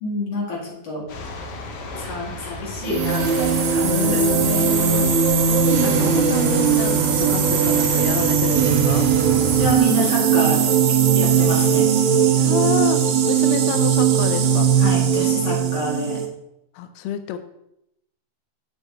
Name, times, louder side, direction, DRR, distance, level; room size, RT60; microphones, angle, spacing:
voice 1, 0.0-1.0 1.9-4.7 9.5-10.7 11.1-11.9 14.8-16.2, left 1 dB, 55° left, -4 dB, 2.8 m, -27 dB
sound 1, 1.1-9.8, left 3 dB, 70° left, 1.4 m, -33 dB
sound 2, 2.8-16.3, right 7 dB, 75° right, 1.9 m, -19 dB
voice 2, 3.8-9.1 12.4-13.0 13.3-14.7 16.7-17.4, left 8 dB, 90° left, 9 dB, 1.5 m, -29 dB
7.4 x 6.8 x 2.8 m, 0.81 s
omnidirectional pair, 3.6 m